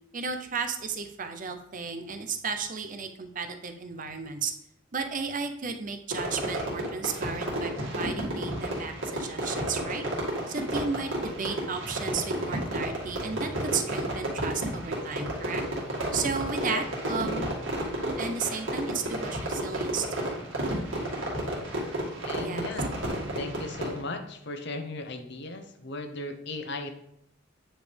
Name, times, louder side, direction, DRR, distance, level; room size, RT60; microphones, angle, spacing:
voice 1, 0.1-4.5 4.9-10.1 10.5-17.4 18.2-20.3 22.4-22.7, right 5 dB, 45° right, 7 dB, 0.6 m, -34 dB
Fireworks, 6.1-24.0, right 1 dB, 80° right, 2.2 m, -32 dB
voice 2, 22.2-22.9 23.4-26.9, left 2 dB, 60° left, 7 dB, 0.9 m, -36 dB
9.0 x 5.0 x 3.4 m, 0.75 s
head